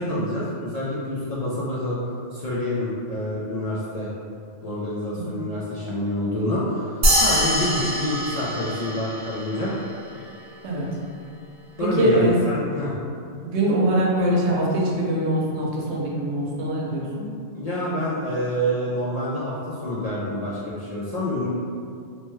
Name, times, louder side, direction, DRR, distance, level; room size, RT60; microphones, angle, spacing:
voice 1, 0.0-2.0 2.3-4.1 4.6-9.7 11.8-12.9 17.5-21.5, left 1 dB, 55° left, -8 dB, 0.4 m, -27 dB
sound 1, 7.0-9.8, equal, 65° right, 0.9 m, -23 dB
voice 2, 11.8-12.3 13.4-17.3, right 1 dB, 90° right, -3 dB, 0.9 m, -23 dB
2.9 x 2.1 x 3.0 m, 2.3 s
omnidirectional pair, 1.1 m